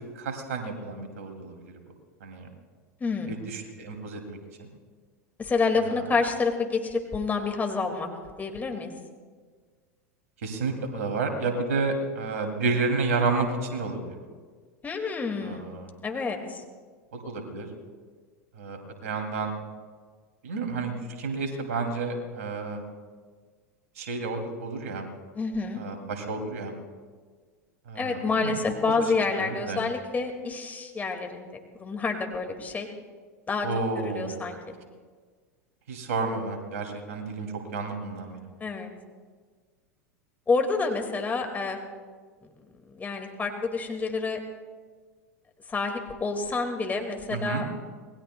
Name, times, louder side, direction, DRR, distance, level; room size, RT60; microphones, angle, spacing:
voice 1, 0.2-1.7 2.2-2.5 3.3-4.4 5.8-6.0 10.4-14.2 15.4-15.9 17.1-17.7 18.6-19.5 20.4-22.8 24.0-25.0 25.8-26.7 27.9-28.6 29.4-29.8 33.6-34.4 35.9-38.5 47.3-47.6, right 3 dB, 70° right, 4 dB, 2.7 m, -31 dB
voice 2, 3.0-3.4 5.4-8.1 8.4-8.9 14.8-15.7 16.0-16.6 25.3-25.8 28.0-32.9 33.5-33.7 34.0-34.6 38.6-38.9 40.5-41.8 42.4-42.5 42.8-44.4 45.7-47.7, left 4 dB, 20° left, 4 dB, 2.1 m, -28 dB
26.5 x 20.0 x 2.3 m, 1.5 s
figure-of-eight pair, 85°, 9 cm